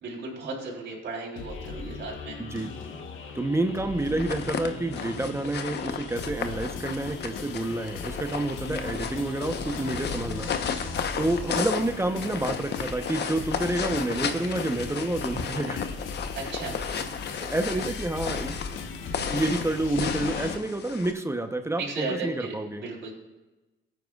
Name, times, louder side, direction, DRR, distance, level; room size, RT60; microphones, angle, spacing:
voice 1, 0.0-2.4 16.4-16.8 21.8-22.5 22.8-23.1, right 3 dB, 65° right, -4 dB, 3.8 m, -35 dB
sound 1, 1.4-20.6, left 4 dB, 85° left, 1.2 m, -38 dB
voice 2, 2.4-2.7 3.3-10.5 11.2-15.9 17.4-18.6 19.3-22.9, right 2 dB, 15° right, 7 dB, 0.9 m, -29 dB
sound 2, 4.0-21.1, left 7 dB, 60° left, 1.0 m, -34 dB
17.5 x 9.3 x 2.4 m, 1.1 s
cardioid pair, 90°, 20 cm